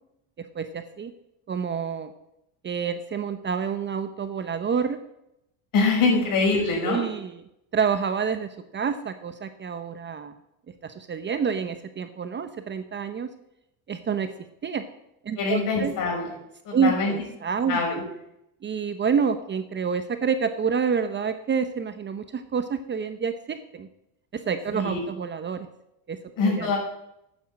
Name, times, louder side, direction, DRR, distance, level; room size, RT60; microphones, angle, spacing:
voice 1, 0.5-1.1 1.5-2.1 2.6-5.0 6.8-7.3 7.7-10.3 10.8-13.3 13.9-14.3 14.6-14.9 15.2-15.9 16.7-18.0 18.6-23.9 24.3-25.7 26.1-26.2 26.4-26.7, right 6 dB, 25° right, 10 dB, 0.8 m, -28 dB
voice 2, 5.7-7.0 15.4-16.3 16.6-17.1 17.7-18.0 24.7-25.1 26.3-26.8, left 3 dB, 50° left, 0 dB, 5.5 m, -24 dB
8.7 x 8.7 x 7.4 m, 0.83 s
supercardioid pair, 115°, 41 cm